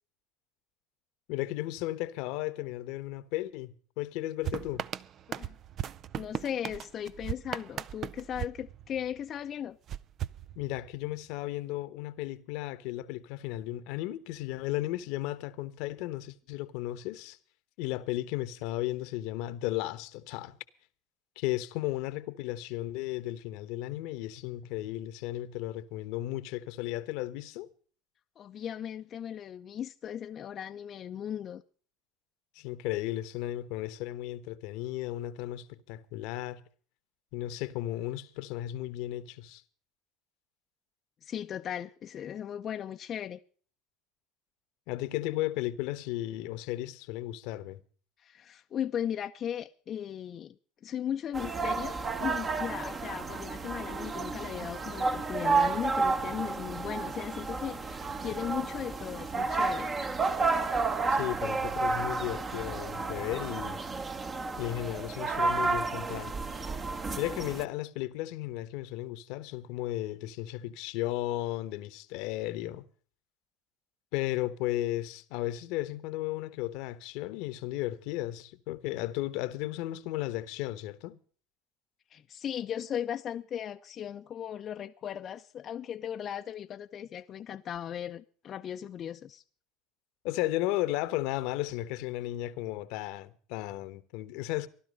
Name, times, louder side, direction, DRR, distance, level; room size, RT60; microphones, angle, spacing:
voice 1, 1.3-4.8 10.6-17.4 17.8-20.6 21.4-27.7 32.5-36.6 37.3-39.6 44.9-47.8 61.2-63.8 64.6-66.3 67.2-72.9 74.1-81.2 90.2-94.7, left 15 dB, 70° left, 1.0 m, -34 dB
sound 1, 4.4-9.3 9.9-11.1, right 10 dB, 45° right, 0.6 m, -38 dB
voice 2, 6.2-9.8 28.4-31.6 41.2-43.4 48.2-50.5 50.8-59.9 82.1-89.4, left 9 dB, 45° left, 0.6 m, -37 dB
sound 2, 51.3-67.6, right 4 dB, 30° right, 1.3 m, -31 dB
15.5 x 12.0 x 5.3 m
hypercardioid pair, 90°, 0 cm